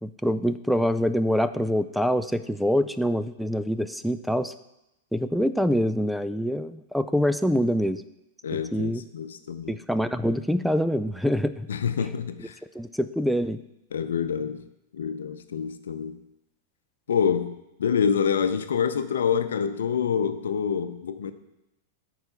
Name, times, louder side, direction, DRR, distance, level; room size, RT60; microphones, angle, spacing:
voice 1, 0.0-4.5 5.1-8.0 8.7-9.0 9.7-11.7 12.7-13.6, equal, ahead, 12 dB, 0.3 m, -25 dB
voice 2, 8.4-9.8 11.7-12.6 13.9-14.6 14.9-16.2 17.1-17.5 17.8-21.3, left 7 dB, 85° left, 10 dB, 0.6 m, -26 dB
8.9 x 4.7 x 5.6 m, 0.88 s
hypercardioid pair, 125°, 0 cm